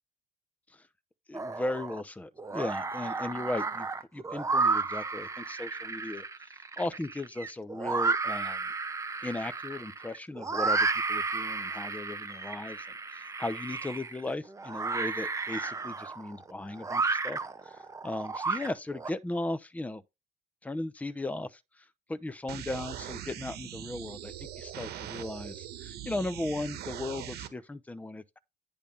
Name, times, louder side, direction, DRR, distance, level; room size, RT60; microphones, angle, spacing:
voice 1, 1.3-3.9 4.1-8.7 9.2-20.0 20.6-28.4, left 2 dB, 10° left, 0.8 m, -37 dB
sound 1, 1.3-2.0 2.4-19.1, right 4 dB, 20° right, 0.8 m, -32 dB
sound 2, 22.5-27.5, right 11 dB, 70° right, 1.4 m, -41 dB
10.0 x 3.5 x 5.5 m
cardioid pair, 110°, 17 cm